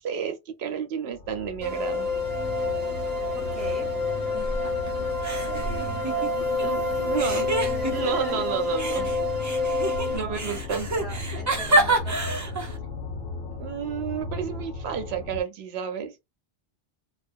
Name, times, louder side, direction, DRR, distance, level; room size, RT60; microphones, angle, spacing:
voice 1, 0.0-2.1 6.6-7.5 7.9-9.1 10.1-10.9 13.6-16.1, right 7 dB, 85° right, 0.8 m, -31 dB
sound 1, 1.1-15.4, left 3 dB, 60° left, 0.8 m, -37 dB
sound 2, 1.6-10.2, left 3 dB, 45° right, 0.8 m, -28 dB
voice 2, 3.3-3.9 5.3-6.5 6.9-8.5 8.9-9.1 10.1-12.7, equal, ahead, 1.0 m, -41 dB
sound 3, 4.3-4.9 5.2-6.6 7.2-8.3 8.8-12.8, right 2 dB, 25° right, 0.4 m, -28 dB
2.3 x 2.1 x 2.5 m
omnidirectional pair, 1.1 m